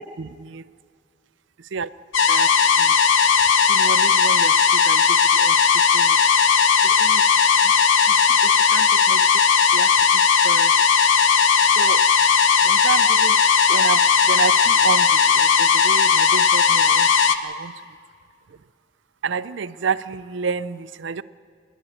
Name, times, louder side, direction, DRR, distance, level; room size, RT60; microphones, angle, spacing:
voice 1, 0.2-0.6 1.7-1.9 2.3-2.5 2.8-2.9 3.7-5.6 5.9-6.2 6.8-7.2 8.1-9.2 9.6-9.9 10.4-10.7 11.8-12.0 12.6-13.4 13.7-14.0 14.3-15.1 15.4-17.1 17.4-17.7 19.2-21.2, right 6 dB, 70° right, 15 dB, 0.5 m, -29 dB
sound 1, 2.1-17.4, left 6 dB, 75° left, 0.9 m, -17 dB
25.5 x 11.0 x 9.9 m, 2.1 s
head